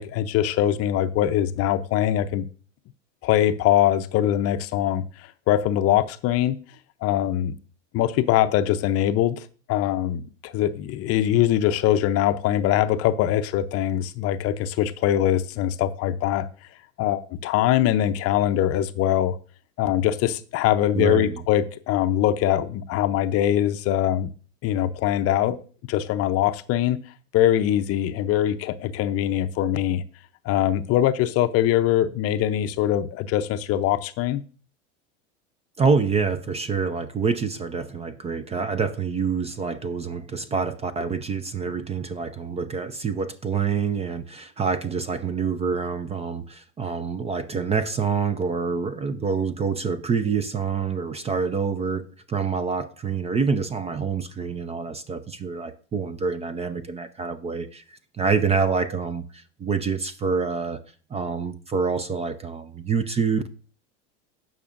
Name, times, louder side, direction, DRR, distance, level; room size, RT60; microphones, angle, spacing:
voice 1, 0.0-2.5 3.2-5.0 5.5-6.6 7.0-7.6 7.9-16.5 17.0-19.4 19.8-24.3 24.6-25.6 25.9-27.0 27.3-30.0 30.4-34.4, left 12 dB, 40° left, 0.6 m, -22 dB
voice 2, 20.9-21.4 35.8-52.0 52.3-60.8 61.1-63.5, right 5 dB, 20° right, 0.5 m, -26 dB
16.5 x 5.6 x 2.5 m
hypercardioid pair, 100°, 36 cm